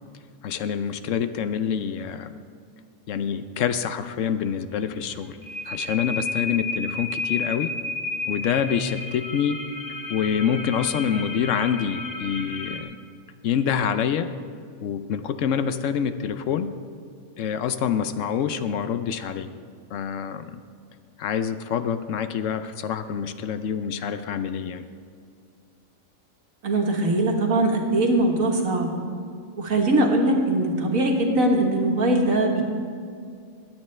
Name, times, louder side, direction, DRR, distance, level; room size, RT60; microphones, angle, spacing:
voice 1, 0.4-2.3 3.1-5.4 5.7-7.7 8.3-9.6 10.1-13.0 13.4-14.3 14.8-16.8 17.4-19.5 19.9-20.6 21.2-24.8, left 8 dB, 70° left, 10 dB, 0.9 m, -26 dB
sound 1, 4.7-12.8, left 3 dB, 40° left, 1.2 m, -32 dB
voice 2, 26.6-28.9 29.6-32.6, right 2 dB, 75° right, 1 dB, 1.9 m, -21 dB
22.0 x 9.0 x 3.3 m, 2.2 s
omnidirectional pair, 1.4 m